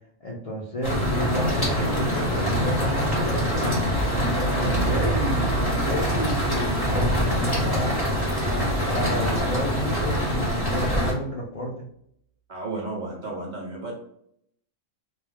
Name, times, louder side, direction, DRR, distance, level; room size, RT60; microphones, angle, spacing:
voice 1, 0.2-3.7 4.3-8.1 8.9-11.9, left 1 dB, 75° left, -3 dB, 0.3 m, -31 dB
sound 1, 0.8-11.1, equal, 20° left, 0.8 m, -24 dB
sound 2, 4.6-10.3, right 8 dB, 75° right, 0.9 m, -34 dB
voice 2, 12.5-13.9, right 2 dB, 50° right, -2 dB, 0.6 m, -33 dB
2.3 x 2.2 x 3.3 m, 0.71 s
omnidirectional pair, 1.3 m